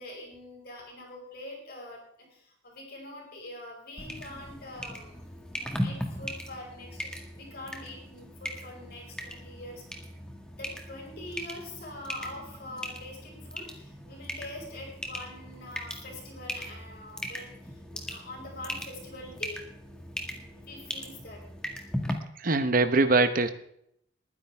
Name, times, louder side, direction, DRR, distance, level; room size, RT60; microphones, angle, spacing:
voice 1, 0.0-5.2 5.6-10.0 10.5-19.6 20.5-21.4, left 1 dB, 50° left, -1 dB, 5.3 m, -44 dB
sound 1, 4.0-22.1, equal, 5° left, 1.8 m, -39 dB
voice 2, 22.4-23.5, right 3 dB, 45° right, 9 dB, 1.0 m, -22 dB
21.0 x 10.0 x 3.5 m, 0.71 s
head